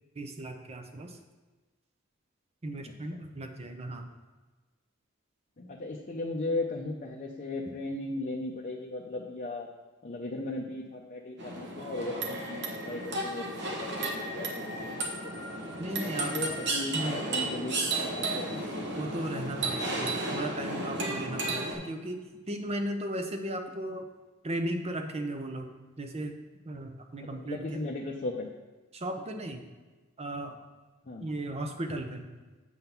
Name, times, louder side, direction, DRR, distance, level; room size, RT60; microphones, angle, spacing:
voice 1, 0.2-1.2 2.6-4.1 15.8-16.4 16.9-17.3 19.0-24.1 24.4-25.7 26.0-26.4 26.6-27.8 28.9-29.6 30.2-30.6 31.2-32.3, right 1 dB, 30° right, 5 dB, 0.6 m, -36 dB
voice 2, 5.6-9.7 10.0-15.4 15.9-18.6 27.3-28.5 31.0-31.2, left 2 dB, 40° left, 0 dB, 0.6 m, -37 dB
sound 1, 11.4-21.7, right 2 dB, 55° right, 1.1 m, -33 dB
7.9 x 3.8 x 5.7 m, 1.3 s
head